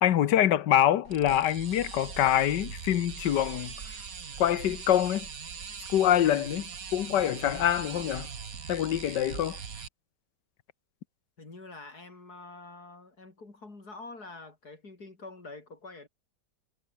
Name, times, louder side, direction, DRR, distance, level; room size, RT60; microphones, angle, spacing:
voice 1, 0.0-3.7 4.4-5.2 5.9-8.3 8.7-9.6, left 11 dB, 90° left, 1.6 m, -25 dB
sound 1, 1.0-9.9, right 6 dB, 55° right, 2.2 m, -41 dB
voice 2, 11.4-16.1, left 3 dB, 65° left, 5.2 m, -46 dB
omnidirectional pair, 1.8 m